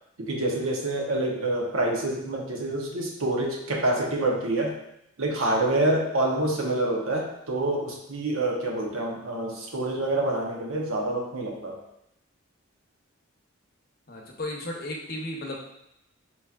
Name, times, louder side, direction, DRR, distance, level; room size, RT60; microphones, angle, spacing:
voice 1, 0.2-4.7 5.2-11.8, right 1 dB, 85° right, 0 dB, 0.8 m, -27 dB
voice 2, 14.1-15.6, left 1 dB, 45° left, 0 dB, 0.7 m, -34 dB
5.4 x 3.0 x 2.4 m, 0.81 s
head